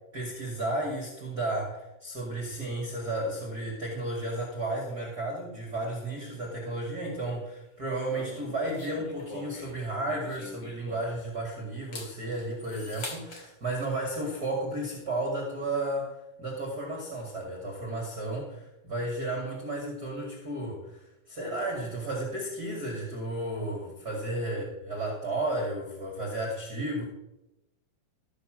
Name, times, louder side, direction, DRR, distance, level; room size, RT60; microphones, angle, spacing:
voice 1, 0.1-27.0, right 1 dB, 30° right, -1 dB, 2.3 m, -33 dB
sound 1, 8.1-11.3 11.8-13.5, left 2 dB, 35° left, 2.4 m, -43 dB
14.5 x 7.0 x 6.3 m, 0.95 s
omnidirectional pair, 4.2 m